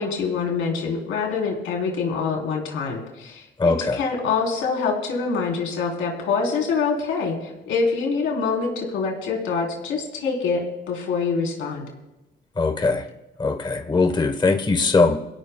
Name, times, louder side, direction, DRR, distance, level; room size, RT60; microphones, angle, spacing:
voice 1, 0.0-11.9, left 5 dB, 85° left, 1 dB, 3.5 m, -25 dB
voice 2, 3.6-4.0 12.6-13.1 13.4-15.2, left 3 dB, 20° left, 7 dB, 1.0 m, -20 dB
23.5 x 16.5 x 2.2 m, 0.97 s
cardioid pair, 90°, 20 cm